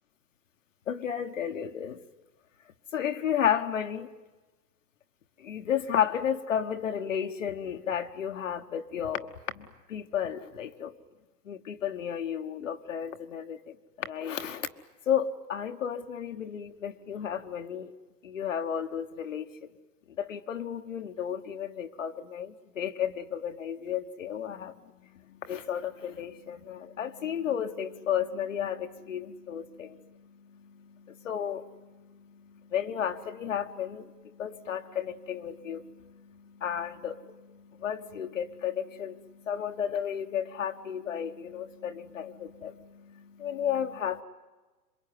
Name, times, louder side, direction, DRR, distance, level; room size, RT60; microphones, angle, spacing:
voice 1, 0.9-2.0 2.9-4.1 5.4-9.3 9.6-10.9 11.5-13.6 14.0-14.7 15.1-17.9 18.2-19.5 20.2-24.7 25.4-30.0 31.0-31.9 32.7-34.1 34.4-39.2 39.5-44.2, left 9 dB, 50° left, 6 dB, 1.2 m, -33 dB
27.0 x 23.0 x 9.4 m, 1.2 s
hypercardioid pair, 180°, 49 cm